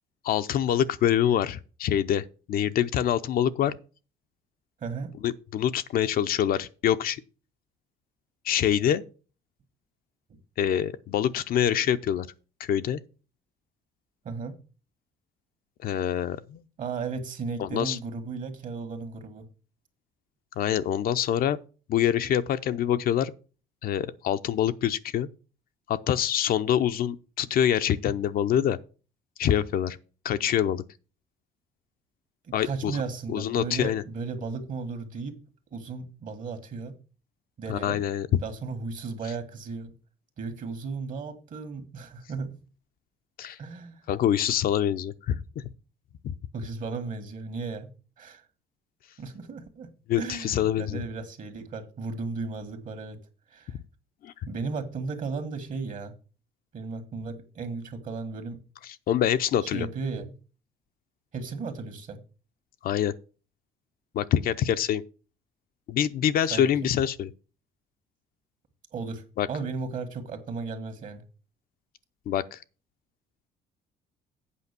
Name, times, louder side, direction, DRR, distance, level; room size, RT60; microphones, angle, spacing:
voice 1, 0.2-3.8 5.2-7.2 8.4-9.0 10.6-12.3 12.6-13.0 15.8-16.6 17.6-18.0 20.6-21.6 21.9-23.3 23.8-25.3 25.9-28.8 29.4-30.0 30.2-30.8 32.5-33.0 33.3-34.0 37.7-38.4 43.4-43.6 44.1-45.6 46.2-46.3 50.1-51.0 54.2-54.3 58.8-59.9 62.8-63.1 64.1-65.0 65.9-67.3 69.4-69.5 72.3-72.6, left 10 dB, 60° left, 0.6 m, -25 dB
voice 2, 4.8-5.1 14.2-14.6 16.8-19.5 32.4-35.4 35.7-36.9 37.6-38.0 38.4-39.9 40.4-42.5 43.6-44.0 46.5-48.5 49.2-49.9 50.2-53.2 53.5-53.8 54.5-56.1 56.7-58.6 59.6-60.4 61.3-62.2 66.5-66.9 68.9-71.2, right 4 dB, 50° right, 1.9 m, -35 dB
8.4 x 5.2 x 6.8 m
cardioid pair, 110°, 17 cm